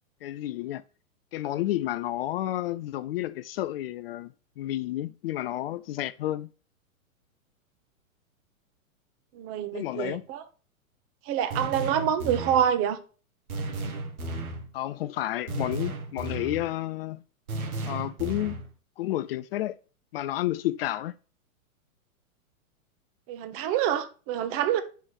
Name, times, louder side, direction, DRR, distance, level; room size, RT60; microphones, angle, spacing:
voice 1, 0.2-0.8 1.3-4.3 4.6-6.5 9.7-10.2 14.7-17.2 17.9-18.6 19.0-19.8 20.1-21.1, left 14 dB, 45° left, 0.4 m, -31 dB
voice 2, 9.3-10.4 11.3-13.0 23.3-24.8, right 10 dB, 30° right, 1.0 m, -26 dB
sound 1, 11.5-12.7 13.5-14.7 15.5-16.7 17.5-18.7, right 2 dB, 80° right, 1.7 m, -34 dB
6.1 x 5.8 x 6.1 m
hypercardioid pair, 120°, 42 cm